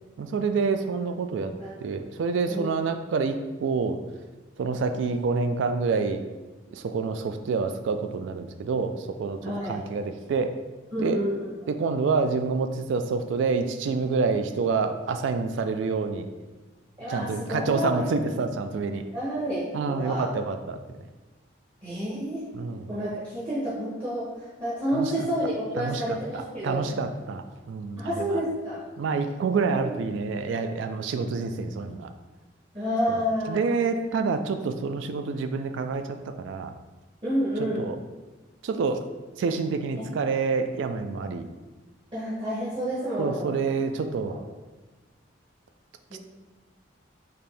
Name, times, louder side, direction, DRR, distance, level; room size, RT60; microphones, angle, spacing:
voice 1, 0.2-1.5 1.8-4.0 4.6-6.2 6.7-10.5 11.0-11.2 11.7-16.3 17.1-19.0 19.7-21.0 22.5-22.9 24.9-25.3 25.8-26.2 26.6-28.4 29.0-32.1 33.1-33.2 33.5-36.7 37.8-38.0 38.6-39.0 39.4-41.5 43.2-44.4, right 4 dB, 70° right, 8 dB, 0.3 m, -27 dB
voice 2, 9.4-9.8 10.9-11.5 17.0-18.0 19.1-20.3 21.8-22.5 22.9-26.9 28.0-28.8 29.7-29.9 32.7-33.9 37.2-37.9 39.9-40.1 42.1-43.6 44.3-44.4 46.1-46.2, equal, 25° right, -10 dB, 1.0 m, -29 dB
4.2 x 2.7 x 3.3 m, 1.2 s
head